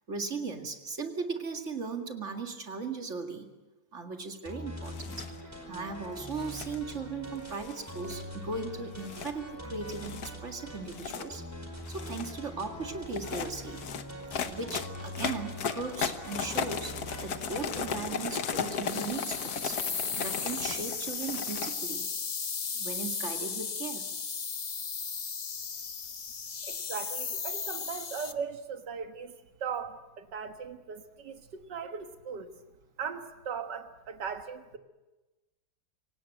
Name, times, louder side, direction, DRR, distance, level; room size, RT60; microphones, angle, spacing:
voice 1, 0.1-3.5 3.9-5.2 5.7-11.4 11.9-13.8 14.5-17.0 17.2-19.8 20.2-22.0 22.7-24.1, right 4 dB, 45° right, 2.3 m, -37 dB
sound 1, 4.4-18.2, equal, 10° right, 4.7 m, -43 dB
sound 2, 4.8-5.3 6.2-6.8 7.5-8.3 9.0-9.3 9.9-10.3 10.8-11.3 11.8-12.4 13.1-21.8, left 7 dB, 65° left, 1.6 m, -36 dB
sound 3, 18.9-28.3, left 6 dB, 40° left, 0.6 m, -35 dB
voice 2, 26.6-32.5 33.0-34.8, right 6 dB, 85° right, 2.1 m, -38 dB
26.0 x 17.5 x 9.1 m
omnidirectional pair, 1.8 m